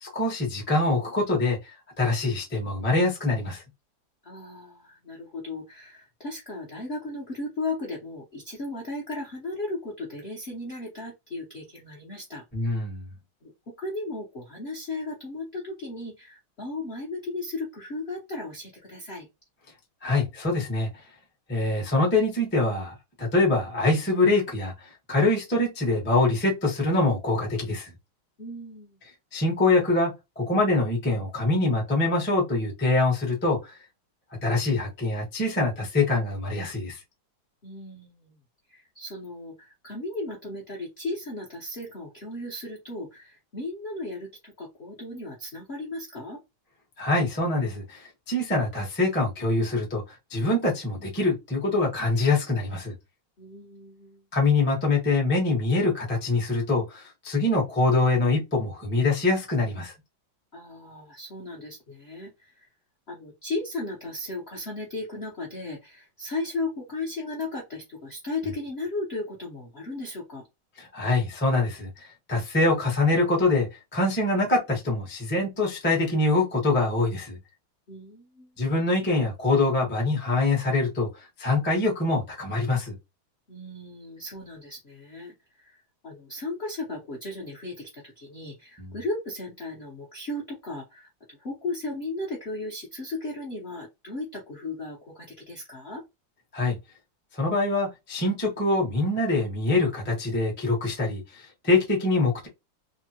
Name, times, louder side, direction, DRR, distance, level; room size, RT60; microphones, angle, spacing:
voice 1, 0.0-1.6 2.0-3.6 12.5-13.0 20.0-20.9 21.5-27.9 29.3-33.8 34.4-37.0 47.0-50.0 50.3-52.9 54.3-59.9 70.8-77.4 78.6-81.1 81.4-83.0 88.8-88.9 96.5-96.8 97.3-102.5, left 2 dB, 15° left, 0.4 m, -24 dB
voice 2, 4.2-12.7 13.4-19.3 28.4-29.0 37.6-38.4 38.7-46.4 53.4-54.2 60.5-62.7 63.1-70.5 77.9-78.5 83.5-96.0, left 2 dB, 55° left, 0.6 m, -36 dB
3.5 x 2.1 x 2.8 m
omnidirectional pair, 2.3 m